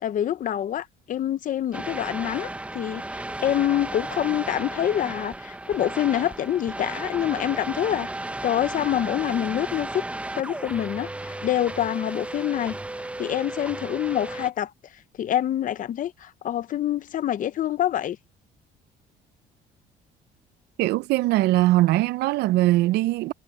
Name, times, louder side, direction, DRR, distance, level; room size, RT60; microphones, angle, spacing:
voice 1, 0.0-8.1 8.4-10.0 10.4-12.8 13.2-14.7 15.2-18.2, left 11 dB, 50° left, 0.7 m, -26 dB
sound 1, 1.7-14.5, right 2 dB, 5° right, 1.0 m, -34 dB
voice 2, 20.8-23.3, right 17 dB, 80° right, 0.5 m, -21 dB
cardioid pair, 110°, 17 cm